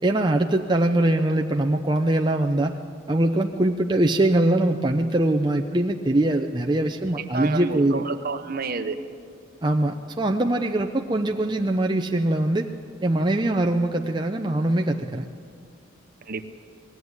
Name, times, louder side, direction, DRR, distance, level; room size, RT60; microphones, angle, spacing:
voice 1, 0.0-2.8 3.1-8.0 9.6-12.7 13.0-15.2, right 1 dB, 20° right, 3 dB, 0.6 m, -22 dB
voice 2, 7.3-9.0 16.3-16.5, right 4 dB, 45° right, 9 dB, 1.0 m, -29 dB
20.0 x 15.0 x 9.6 m, 2.2 s
head